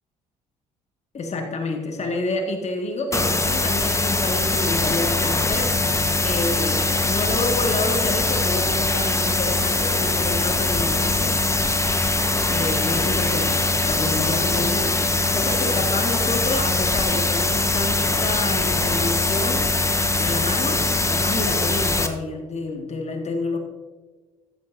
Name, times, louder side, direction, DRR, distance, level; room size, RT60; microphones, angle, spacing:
voice 1, 1.1-11.4 12.5-15.0 15.3-19.7 20.2-23.6, left 2 dB, 40° left, 3 dB, 1.8 m, -29 dB
sound 1, 3.1-22.1, left 2 dB, 15° left, 1.2 m, -22 dB
14.5 x 12.5 x 2.7 m, 1.3 s
figure-of-eight pair, 50°, 18 cm